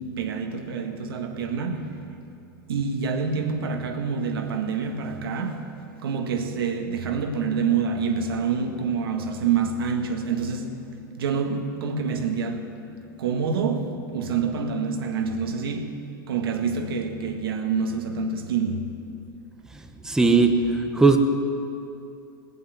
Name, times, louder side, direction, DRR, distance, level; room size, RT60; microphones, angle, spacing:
voice 1, 0.0-2.1 2.7-10.8 11.2-16.0 16.3-19.0, right 5 dB, 90° right, 1.7 m, -27 dB
voice 2, 19.7-21.2, right 3 dB, 5° right, 1.0 m, -19 dB
18.5 x 8.2 x 9.4 m
supercardioid pair, 130°, 12 cm